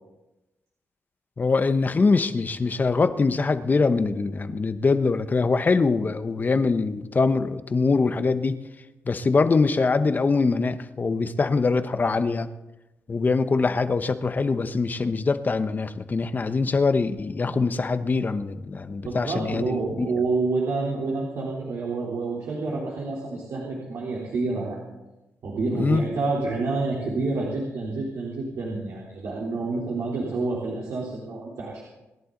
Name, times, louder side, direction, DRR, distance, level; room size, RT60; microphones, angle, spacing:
voice 1, 1.4-8.6 9.1-12.5 13.1-20.1 25.8-26.0, left 4 dB, 35° left, 10 dB, 1.0 m, -23 dB
voice 2, 19.0-24.8 25.4-31.8, right 3 dB, 75° right, -3 dB, 3.6 m, -28 dB
26.0 x 11.0 x 3.9 m, 1.0 s
cardioid pair, 80°, 5 cm